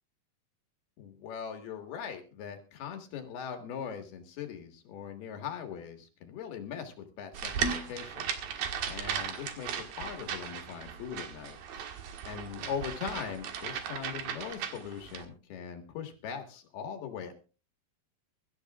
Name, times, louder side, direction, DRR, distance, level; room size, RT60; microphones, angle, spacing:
voice 1, 1.0-8.6 8.9-11.9 12.2-17.3, left 7 dB, 80° left, 5 dB, 3.7 m, -40 dB
sound 1, 7.3-15.2, right 7 dB, 70° right, 3.4 m, -37 dB
24.0 x 13.5 x 2.4 m, 0.33 s
omnidirectional pair, 4.5 m